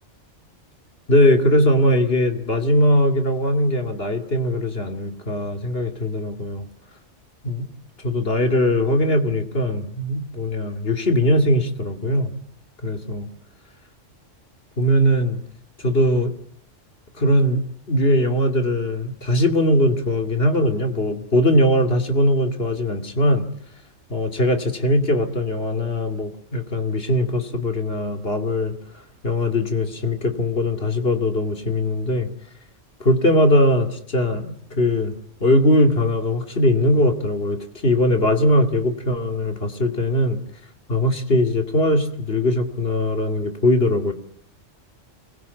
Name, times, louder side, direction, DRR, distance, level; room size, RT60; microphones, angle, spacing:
voice 1, 1.1-6.7 7.4-7.7 8.0-12.3 12.8-13.3 14.8-15.4 15.8-16.3 17.2-23.5 24.1-28.7 29.2-32.3 33.0-35.2 35.4-40.4 40.9-44.1, left 1 dB, 50° left, 6 dB, 2.7 m, -20 dB
25.5 x 21.0 x 8.3 m, 0.66 s
omnidirectional pair, 1.3 m